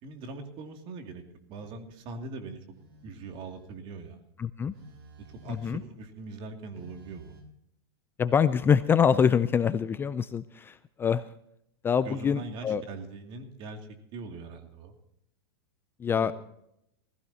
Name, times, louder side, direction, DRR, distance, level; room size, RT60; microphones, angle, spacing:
voice 1, 0.0-1.2 1.5-2.8 3.0-4.2 5.4-7.4 12.0-14.9 16.2-16.3, right 3 dB, 40° right, 5 dB, 2.6 m, -41 dB
Telephone, 1.5-1.8 2.7-3.8 4.7-6.0 6.7-7.4, right 2 dB, 70° right, 4.4 m, -51 dB
voice 2, 4.4-4.7 5.5-5.8 8.2-11.3 11.8-12.8 16.0-16.4, left 7 dB, 15° left, 14 dB, 0.4 m, -25 dB
19.0 x 15.5 x 2.9 m, 0.76 s
hypercardioid pair, 125°, 13 cm